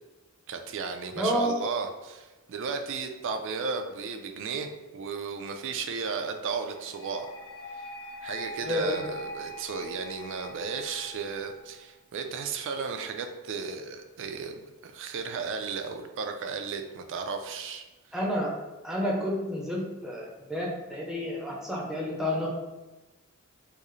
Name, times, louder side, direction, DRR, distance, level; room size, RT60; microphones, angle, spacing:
voice 1, 0.5-7.3 7.8-7.9 8.2-17.9, right 5 dB, 55° right, 6 dB, 0.4 m, -34 dB
voice 2, 1.2-1.5 8.6-9.0 18.1-18.5 18.8-22.5, equal, ahead, -3 dB, 0.6 m, -30 dB
sound 1, 6.7-11.7, equal, 90° left, 0.5 m, -42 dB
4.7 x 2.0 x 3.0 m, 1.1 s
head